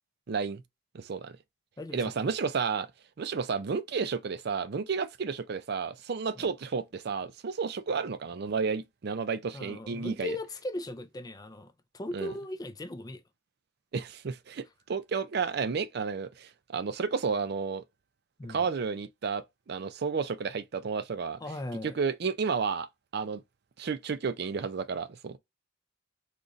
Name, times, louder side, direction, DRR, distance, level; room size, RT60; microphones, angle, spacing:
voice 1, 0.3-0.6 0.9-1.4 1.9-2.9 3.2-10.4 12.1-12.3 13.9-17.8 18.5-21.4 21.8-22.9 23.1-23.4 23.8-25.4, right 5 dB, 55° right, 0.4 m, -32 dB
voice 2, 1.8-2.1 6.4-6.5 9.5-13.2 18.4-18.6 21.4-22.0, left 1 dB, 20° left, 0.4 m, -38 dB
3.9 x 3.0 x 2.5 m
head